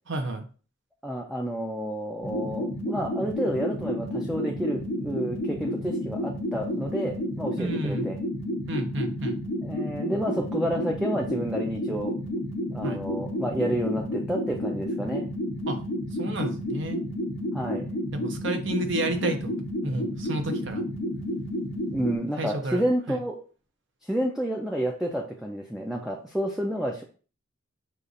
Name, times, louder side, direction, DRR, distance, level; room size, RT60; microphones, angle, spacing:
voice 1, 0.1-0.5 7.6-8.1 8.7-9.4 12.8-13.0 15.7-15.8 16.2-17.0 18.1-19.5 19.8-20.8 22.4-23.2, right 1 dB, 65° right, 5 dB, 0.7 m, -31 dB
voice 2, 1.0-8.2 9.6-12.1 12.7-15.3 17.5-17.9 21.9-23.4 24.0-27.0, equal, ahead, 0 dB, 0.3 m, -30 dB
sound 1, 2.2-22.2, equal, 90° left, 0.8 m, -31 dB
6.5 x 2.4 x 2.6 m, 0.39 s
head